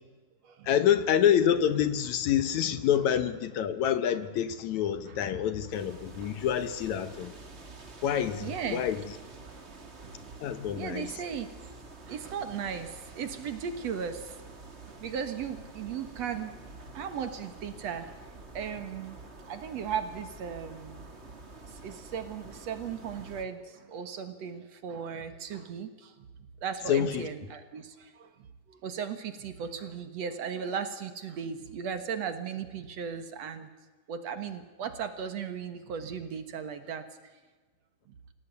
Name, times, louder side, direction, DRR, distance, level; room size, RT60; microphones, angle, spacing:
voice 1, 0.6-7.3 8.0-9.0 10.4-11.1 26.9-27.3, left 9 dB, 70° left, 2.2 m, -27 dB
sound 1, 5.7-23.5, right 3 dB, 25° right, 2.1 m, -48 dB
voice 2, 8.4-8.9 10.0-11.7 12.1-14.5 14.9-16.5 16.9-18.1 18.5-19.2 19.5-21.1 21.8-26.1 26.6-28.3 28.7-33.7 34.1-37.0, right 7 dB, 60° right, 2.4 m, -37 dB
25.5 x 16.5 x 9.5 m
omnidirectional pair, 3.7 m